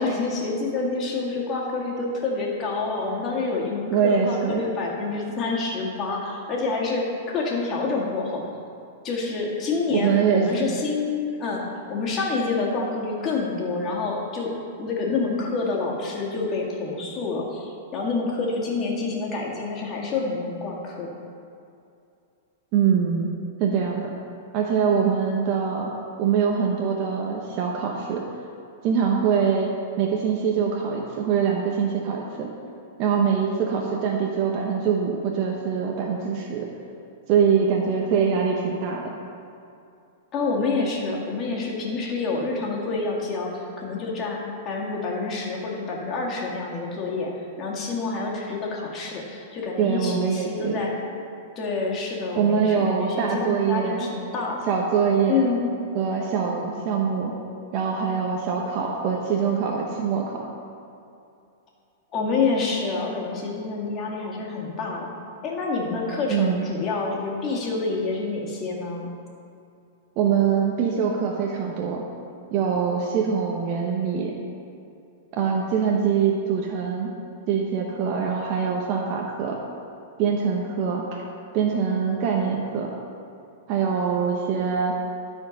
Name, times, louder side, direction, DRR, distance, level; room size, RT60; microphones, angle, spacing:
voice 1, 0.0-8.4 9.0-14.5 14.8-21.1 40.3-44.4 44.7-47.3 47.6-50.9 51.6-54.6 55.3-55.7 62.1-65.1 65.4-69.1, left 3 dB, 30° left, -2 dB, 2.0 m, -27 dB
voice 2, 3.9-4.6 9.9-10.7 22.7-23.3 23.6-24.1 24.5-25.9 26.2-28.2 28.8-29.7 30.0-32.5 33.0-36.7 37.3-39.0 49.8-50.8 52.4-54.1 54.7-55.5 55.9-57.3 57.7-60.4 66.3-66.7 70.2-72.0 72.5-74.4 75.3-77.1 77.5-79.6 80.2-81.2 81.5-82.9 83.7-84.9, right 6 dB, 45° right, 0 dB, 0.9 m, -23 dB
12.5 x 4.5 x 5.2 m, 2.6 s
hypercardioid pair, 130°, 0 cm